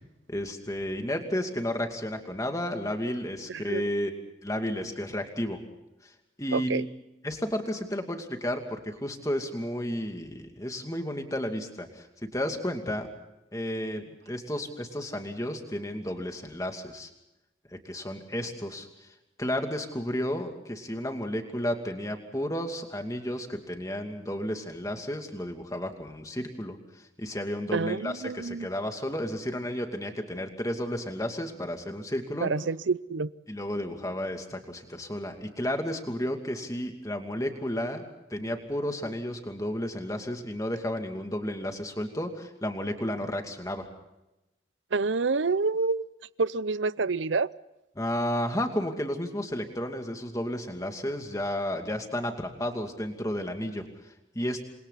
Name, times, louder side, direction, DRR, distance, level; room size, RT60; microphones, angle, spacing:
voice 1, 0.3-4.1 4.4-5.6 6.0-6.1 6.4-6.9 7.2-13.1 13.5-17.1 17.7-32.5 33.5-38.0 38.3-43.9 48.0-54.7, equal, 15° left, 4 dB, 2.5 m, -32 dB
voice 2, 3.5-3.8 6.5-6.8 27.7-28.7 32.4-33.3 44.9-46.0 46.4-47.5, right 4 dB, 75° right, 18 dB, 0.7 m, -28 dB
29.0 x 25.5 x 4.1 m, 0.95 s
head